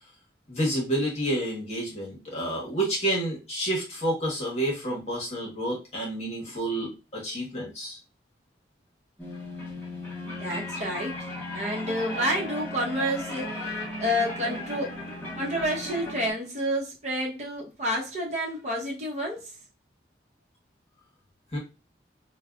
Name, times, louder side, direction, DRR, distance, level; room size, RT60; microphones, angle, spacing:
voice 1, 0.5-8.0 21.5-21.6, right 1 dB, 35° left, 1.2 m, -29 dB
sound 1, 9.2-16.3, left 1 dB, 10° left, 0.9 m, -36 dB
voice 2, 10.4-14.9 15.4-19.5, equal, 40° right, 0.9 m, -29 dB
5.2 x 2.2 x 2.4 m
head